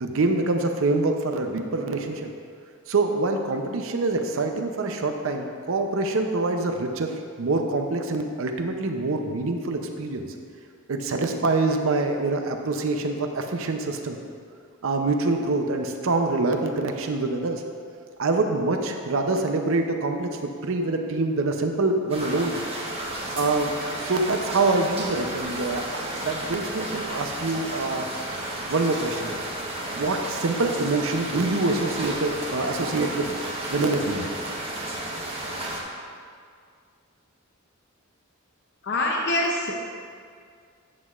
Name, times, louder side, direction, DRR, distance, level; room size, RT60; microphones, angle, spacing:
voice 1, 0.0-2.3 2.9-7.1 7.4-10.3 10.9-14.2 14.8-17.6 18.2-22.6 23.4-28.1 28.7-29.3 29.9-33.4 33.7-34.3, right 3 dB, 65° right, 5 dB, 0.6 m, -25 dB
sound 1, 22.1-35.8, right 1 dB, 25° right, 1.0 m, -33 dB
voice 2, 38.8-39.9, left 1 dB, 50° left, -1 dB, 0.6 m, -25 dB
9.5 x 7.9 x 2.4 m, 2.2 s
head